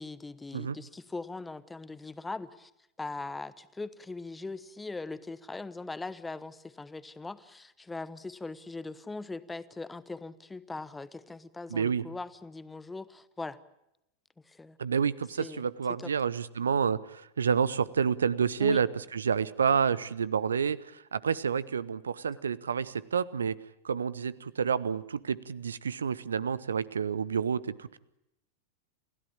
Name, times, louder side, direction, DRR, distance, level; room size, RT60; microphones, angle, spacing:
voice 1, 0.0-2.7 3.0-13.6 14.5-14.8 15.4-15.6 16.0-16.1 18.6-18.8, left 3 dB, 10° left, 16 dB, 1.0 m, -40 dB
voice 2, 11.7-12.0 14.8-18.9 19.1-23.6 23.8-28.0, right 6 dB, 70° right, 19 dB, 0.8 m, -29 dB
28.0 x 16.0 x 8.8 m, 0.87 s
figure-of-eight pair, 90°, 0 cm